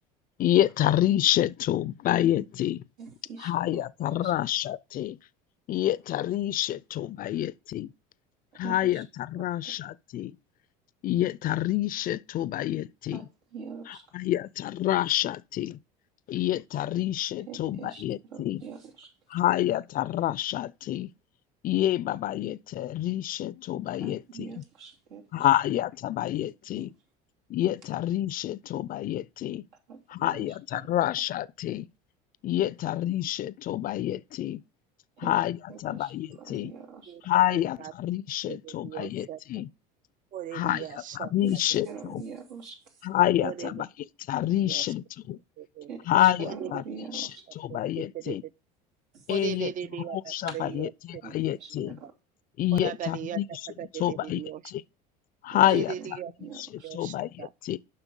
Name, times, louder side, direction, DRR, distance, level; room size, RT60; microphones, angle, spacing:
voice 1, 0.4-2.8 3.4-5.2 5.7-7.9 8.6-10.4 11.0-13.3 13.9-15.8 16.3-18.6 19.3-21.1 21.6-24.6 25.3-26.9 27.5-29.7 30.1-31.9 32.4-34.6 35.2-36.7 37.2-39.7 40.5-42.2 43.0-43.9 44.3-45.4 46.1-46.8 47.1-48.4 49.3-49.7 50.1-52.0 52.6-53.6 54.0-54.8 55.4-55.9 56.5-57.8, left 13 dB, 40° left, 0.5 m, -28 dB
voice 2, 3.0-3.8 4.1-4.3 8.6-9.0 9.4-9.7 13.1-13.2 13.5-14.0 17.5-18.0 18.3-19.1 24.0-25.5 29.9-30.5 30.7-30.8 35.2-35.3 35.7-37.1 41.4-42.8 45.9-47.5 49.1-49.2 50.5-50.6 51.2-52.1 55.5-55.6 56.4-56.9, right 6 dB, 85° right, 2.8 m, -44 dB
voice 3, 37.5-37.9 38.5-39.4 40.3-41.3 43.4-43.9 44.6-44.8 45.6-45.9 46.4-46.8 47.7-48.4 49.3-51.2 51.8-52.1 52.7-53.4 53.8-54.6 55.6-56.3 56.8-57.5, right 10 dB, 40° right, 0.5 m, -38 dB
7.4 x 5.7 x 5.4 m
supercardioid pair, 90°, 21 cm